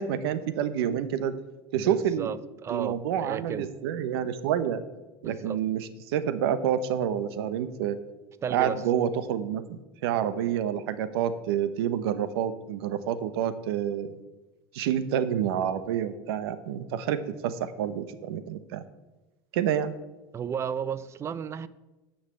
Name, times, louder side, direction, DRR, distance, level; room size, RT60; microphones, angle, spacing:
voice 1, 0.0-1.3 1.7-2.3 2.7-4.8 5.2-8.0 8.5-14.2 14.7-18.8 19.5-19.9, right 9 dB, 90° right, 13 dB, 0.9 m, -28 dB
voice 2, 1.8-2.4 2.6-3.6 5.2-5.6 8.4-8.8 20.3-21.7, right 8 dB, 20° right, 16 dB, 0.4 m, -33 dB
9.9 x 5.8 x 7.6 m, 1.1 s
supercardioid pair, 145°, 13 cm